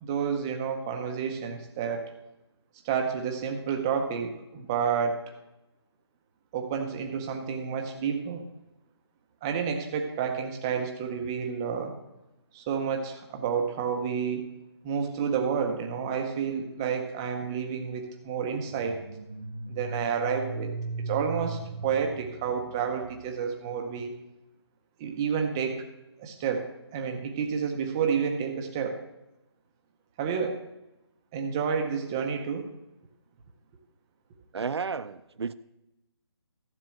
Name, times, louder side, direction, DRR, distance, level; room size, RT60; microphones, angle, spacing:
voice 1, 0.0-2.1 2.8-5.2 6.5-8.4 9.4-11.9 12.5-14.4 14.8-19.0 19.7-20.7 21.0-24.1 25.0-25.8 26.2-26.7 26.9-29.0 30.2-30.6 31.3-32.7, right 6 dB, 10° right, 0.5 m, -30 dB
sound 1, 18.6-23.4, right 3 dB, 50° right, 1.0 m, -38 dB
voice 2, 34.5-35.5, right 5 dB, 65° right, 0.6 m, -32 dB
13.5 x 6.8 x 7.5 m
hypercardioid pair, 170°, 15 cm